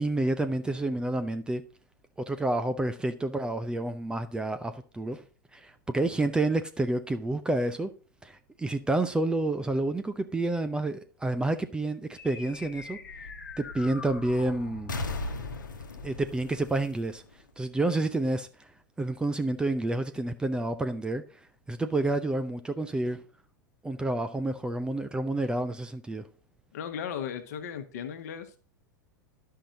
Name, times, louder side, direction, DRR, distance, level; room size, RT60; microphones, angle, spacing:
voice 1, 0.0-1.6 2.3-5.2 5.5-7.9 8.2-13.0 13.6-14.9 16.0-17.2 17.6-18.7 19.0-21.4 21.7-23.2 23.8-26.3, right 2 dB, 10° right, 0.6 m, -29 dB
sound 1, 12.2-17.9, left 3 dB, 75° left, 1.1 m, -39 dB
voice 2, 26.7-28.5, left 8 dB, 55° left, 1.3 m, -36 dB
11.5 x 5.7 x 3.8 m
figure-of-eight pair, 90°, 10 cm